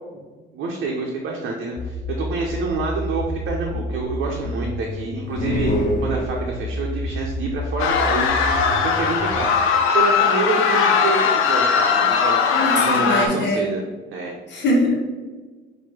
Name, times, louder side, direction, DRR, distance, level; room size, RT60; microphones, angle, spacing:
voice 1, 0.5-8.5 8.8-9.5 9.9-12.4 12.7-13.8 14.1-14.3, right 3 dB, 75° right, -1 dB, 0.7 m, -27 dB
sound 1, 1.8-9.4, left 1 dB, 15° left, 0.4 m, -30 dB
sound 2, 5.3-6.8, equal, 40° left, 1.0 m, -25 dB
sound 3, 7.8-13.3, left 6 dB, 90° left, 0.5 m, -19 dB
voice 2, 12.5-13.6 14.5-15.0, left 1 dB, 65° left, -2 dB, 1.1 m, -21 dB
5.9 x 2.7 x 3.0 m, 1.3 s
cardioid pair, 90°, 20 cm